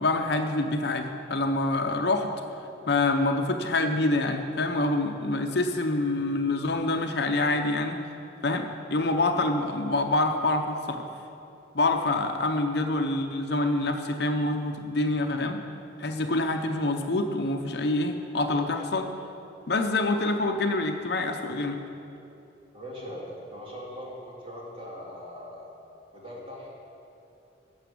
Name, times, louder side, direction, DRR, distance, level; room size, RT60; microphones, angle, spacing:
voice 1, 0.0-2.3 2.9-8.0 8.4-11.0 11.7-15.6 16.0-19.1 19.7-21.8, left 2 dB, 55° left, 5 dB, 0.7 m, -26 dB
voice 2, 22.7-25.7 26.1-26.7, equal, 30° right, -4 dB, 2.6 m, -40 dB
12.0 x 7.0 x 8.5 m, 2.8 s
head